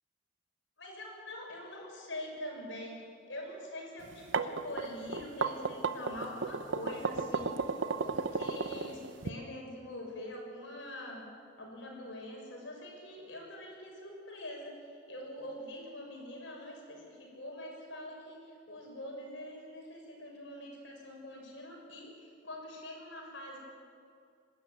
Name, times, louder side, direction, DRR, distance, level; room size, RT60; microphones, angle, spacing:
voice 1, 0.8-3.0 3.3-7.7 8.0-11.2 11.6-23.6, left 1 dB, 70° left, 0 dB, 6.3 m, -44 dB
sound 1, 4.1-9.3, right 4 dB, 70° right, 0.9 m, -33 dB
24.5 x 13.0 x 9.2 m, 2.4 s
head